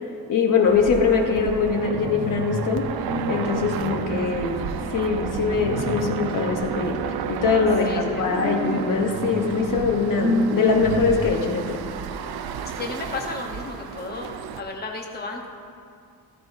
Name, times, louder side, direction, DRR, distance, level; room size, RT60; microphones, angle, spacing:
voice 1, 0.3-2.9 3.3-4.6 4.9-11.8, left 5 dB, 60° left, 3 dB, 1.0 m, -22 dB
sound 1, 0.7-2.6 3.0-4.9 5.5-6.6 8.3-11.3, equal, 15° right, 2.7 m, -30 dB
sound 2, 0.7-14.6, right 7 dB, 80° right, 0.6 m, -32 dB
voice 2, 7.8-8.5 12.8-15.5, left 3 dB, 25° left, 1 dB, 1.0 m, -34 dB
14.0 x 13.5 x 2.7 m, 2.3 s
wide cardioid pair, 165°, 37 cm